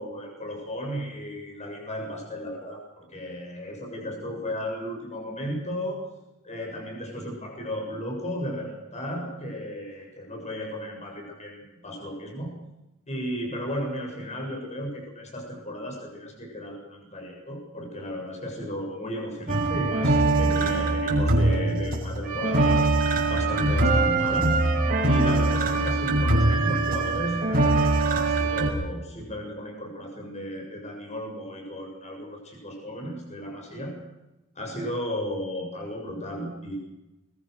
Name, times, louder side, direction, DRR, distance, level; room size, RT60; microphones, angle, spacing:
voice 1, 0.0-6.0 6.4-12.5 13.1-22.8 23.3-24.5 25.1-33.9 34.6-36.8, equal, 30° left, 1 dB, 7.0 m, -34 dB
sound 1, 19.5-28.7, right 2 dB, 40° right, 6.5 m, -22 dB
24.0 x 21.5 x 6.4 m, 0.96 s
head